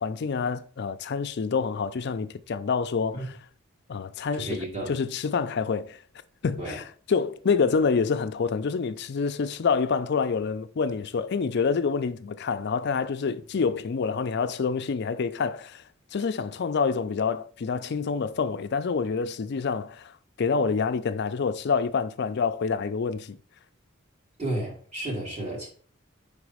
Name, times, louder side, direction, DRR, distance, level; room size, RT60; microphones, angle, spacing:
voice 1, 0.0-3.4 3.9-6.0 6.4-23.4, left 5 dB, 55° left, 0.4 m, -27 dB
voice 2, 4.4-4.9 6.6-6.8 24.4-25.7, right 1 dB, 35° right, 2.7 m, -32 dB
5.3 x 4.0 x 4.9 m
head